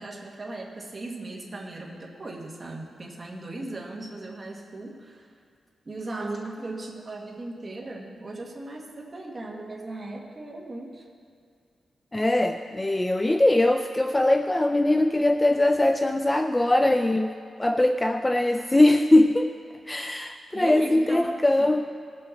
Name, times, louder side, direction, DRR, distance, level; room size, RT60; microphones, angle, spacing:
voice 1, 0.0-5.3 5.8-11.1 20.5-21.7, right 2 dB, 25° right, -1 dB, 1.5 m, -37 dB
voice 2, 12.1-19.5 19.9-21.8, left 1 dB, 15° left, 6 dB, 0.3 m, -21 dB
18.5 x 7.6 x 4.1 m, 2.1 s
wide cardioid pair, 160°, 0 cm